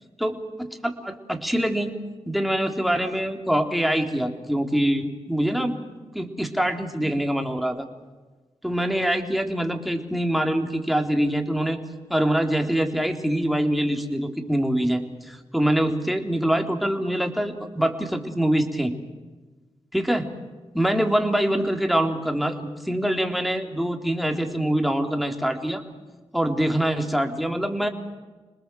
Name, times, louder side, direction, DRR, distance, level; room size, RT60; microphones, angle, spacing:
voice 1, 0.2-1.9 2.3-5.8 6.1-7.9 8.6-11.8 12.1-18.9 19.9-20.3 20.7-25.8 26.3-27.9, right 1 dB, ahead, 3 dB, 3.6 m, -24 dB
27.5 x 20.0 x 7.7 m, 1.3 s
cardioid pair, 40°, 11 cm